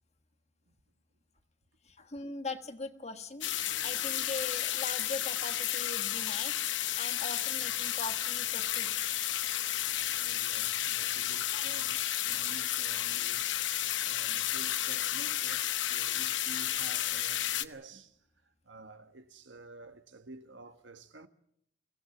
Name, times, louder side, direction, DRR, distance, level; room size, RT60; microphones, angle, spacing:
voice 1, 1.8-8.9, left 3 dB, 35° left, 1.4 m, -41 dB
sound 1, 3.4-17.6, left 12 dB, 70° left, 0.9 m, -32 dB
voice 2, 10.2-13.7 14.0-21.3, right 2 dB, 70° right, 1.5 m, -51 dB
23.5 x 17.0 x 7.1 m
head